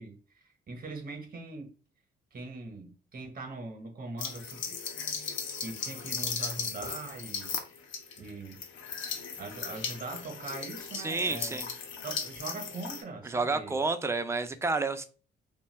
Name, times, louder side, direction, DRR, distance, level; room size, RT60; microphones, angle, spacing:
voice 1, 0.0-1.7 2.3-7.5 8.2-8.6 9.4-11.6 12.0-13.8, right 3 dB, 45° right, 0.8 m, -42 dB
sound 1, 4.2-13.0, left 6 dB, 75° left, 0.6 m, -37 dB
voice 2, 11.0-11.7 13.2-15.0, right 3 dB, 15° right, 0.3 m, -30 dB
2.6 x 2.2 x 3.1 m
cardioid pair, 90°, 20 cm